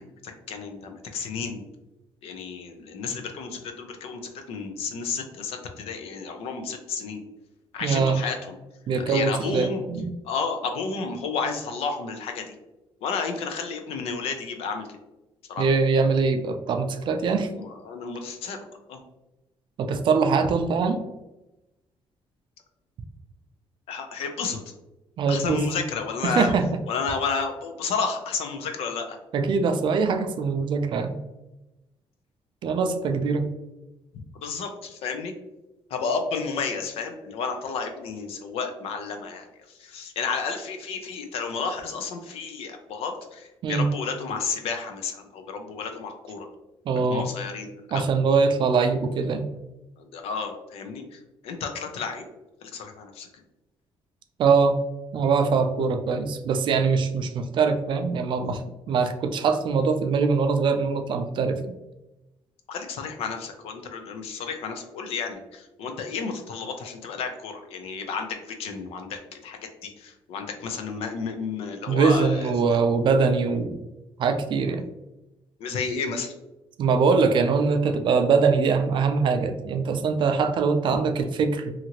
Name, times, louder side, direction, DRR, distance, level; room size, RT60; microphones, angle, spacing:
voice 1, 0.0-1.6 2.2-4.2 4.5-7.2 7.7-8.6 9.1-9.8 10.2-12.5 13.0-14.9 15.5-15.7 17.6-18.6 18.9-19.0 23.9-24.6 25.3-26.5 26.9-29.2 34.4-35.3 35.9-39.5 39.8-46.5 46.9-48.1 50.0-52.2 52.6-53.3 58.5-58.6 62.7-72.5 75.6-76.3, left 5 dB, 80° left, 5 dB, 0.5 m, -32 dB
voice 2, 7.8-8.2 8.9-10.1 15.6-17.5 19.8-21.0 25.2-25.6 26.2-26.7 29.3-31.2 32.6-33.5 43.6-43.9 46.9-47.3 47.9-49.5 54.4-54.8 55.1-58.6 58.9-61.7 71.9-73.8 74.2-74.8 76.8-81.7, right 5 dB, 55° right, 7 dB, 0.4 m, -22 dB
2.8 x 2.5 x 2.8 m, 0.98 s
cardioid pair, 120°, 10 cm